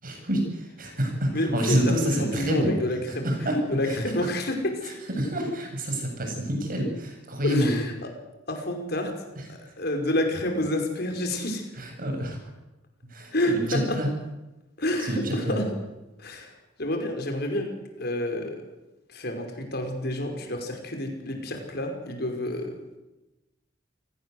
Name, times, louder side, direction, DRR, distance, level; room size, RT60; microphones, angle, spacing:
voice 1, 0.0-2.7 3.2-3.6 3.8-4.0 4.8-7.7 11.8-12.4 13.0-14.1 15.0-15.6, right 1 dB, 50° right, 3 dB, 7.7 m, -27 dB
voice 2, 1.3-4.9 7.4-8.1 8.5-9.1 9.5-11.6 13.3-14.0 14.8-15.7 16.2-16.5 16.8-17.7 18.0-18.6 19.1-22.8, left 1 dB, 60° left, 4 dB, 5.5 m, -29 dB
28.5 x 18.0 x 8.1 m, 1.0 s
head